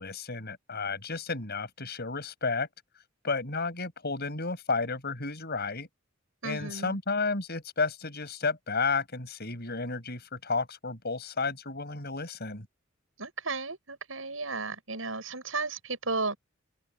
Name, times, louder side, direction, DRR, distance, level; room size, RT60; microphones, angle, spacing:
voice 1, 0.0-2.7 3.2-5.9 6.4-12.7, left 4 dB, 55° left, 6.5 m, -32 dB
voice 2, 6.4-7.0 13.2-16.4, right 3 dB, 85° right, 8.0 m, -34 dB
open air
head